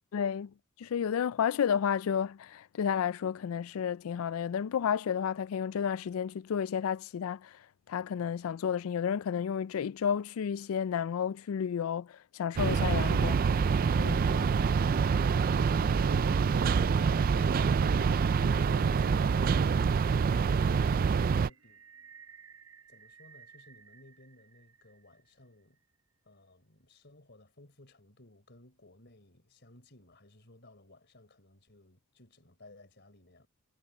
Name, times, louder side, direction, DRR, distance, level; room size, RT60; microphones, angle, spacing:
voice 1, 0.1-7.6 7.9-13.5 14.0-14.5, left 7 dB, 80° left, 0.4 m, -32 dB
sound 1, 12.6-21.5, right 5 dB, 40° right, 0.3 m, -26 dB
voice 2, 16.6-21.9 22.9-25.8 26.2-33.5, left 1 dB, 55° left, 4.0 m, -58 dB
sound 2, 21.5-24.8, right 2 dB, 80° right, 6.0 m, -51 dB
head